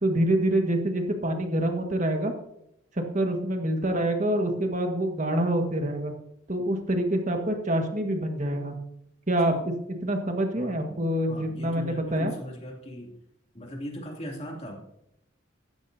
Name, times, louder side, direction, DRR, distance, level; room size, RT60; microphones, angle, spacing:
voice 1, 0.0-2.3 3.1-6.1 6.5-8.8 9.3-12.3, right 1 dB, 35° right, 4 dB, 1.7 m, -26 dB
voice 2, 10.6-13.1 13.5-14.8, equal, 30° left, -1 dB, 2.8 m, -39 dB
15.0 x 13.0 x 2.8 m, 0.80 s
head